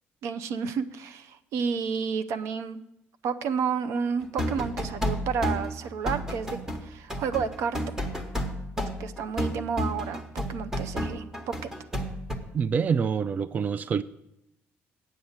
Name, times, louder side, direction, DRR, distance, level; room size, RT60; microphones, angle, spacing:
voice 1, 0.2-2.8 3.2-7.8 9.0-11.7, right 6 dB, 85° right, 0.6 m, -31 dB
sound 1, 4.2-12.4, equal, 10° right, 1.1 m, -31 dB
voice 2, 12.5-14.0, right 6 dB, 35° right, 0.3 m, -26 dB
9.2 x 6.5 x 7.1 m
cardioid pair, 125°, 5 cm